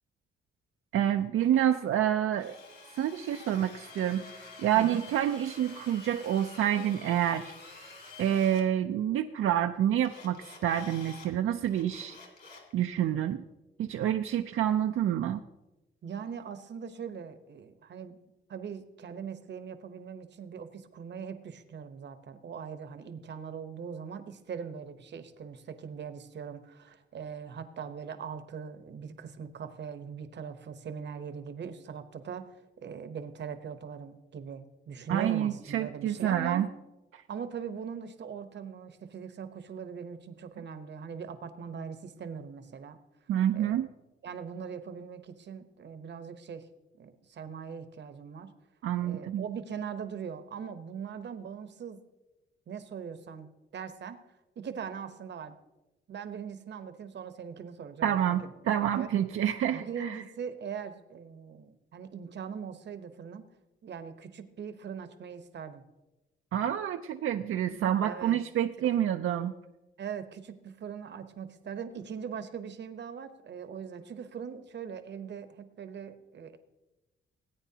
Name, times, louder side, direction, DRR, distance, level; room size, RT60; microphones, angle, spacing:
voice 1, 0.9-2.6 3.0-4.3 4.6-7.5 8.2-12.2 12.7-13.4 13.8-15.4 35.1-36.7 37.1-37.2 43.3-43.9 48.8-49.4 58.0-60.2 66.5-69.5, right 10 dB, 85° right, 6 dB, 0.4 m, -28 dB
Drill, 2.3-8.7 10.0-11.3 11.7-12.7, left 3 dB, 50° left, 2.2 m, -49 dB
voice 2, 16.0-18.2 18.5-36.7 37.3-43.0 43.5-43.9 44.2-46.6 47.0-48.5 49.0-52.0 52.7-54.2 54.6-55.6 56.1-58.5 58.9-59.1 59.7-63.4 63.8-65.8 68.0-68.4 70.0-76.6, right 7 dB, 60° right, 10 dB, 0.8 m, -41 dB
18.0 x 9.0 x 2.8 m, 1.0 s
wide cardioid pair, 130°, 21 cm